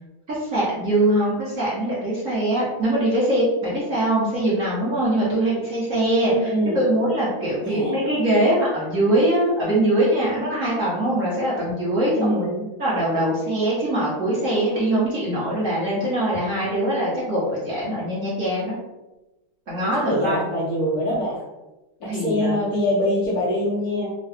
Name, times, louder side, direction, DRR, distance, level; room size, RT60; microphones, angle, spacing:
voice 1, 0.3-12.5 12.8-18.8 19.7-20.4 22.1-22.6, right 1 dB, 45° right, -8 dB, 1.2 m, -22 dB
voice 2, 6.3-6.8 7.6-8.0 12.1-12.7 19.9-21.4 22.0-24.2, equal, 60° left, -7 dB, 1.1 m, -24 dB
3.7 x 2.2 x 3.4 m, 1.0 s
omnidirectional pair, 2.3 m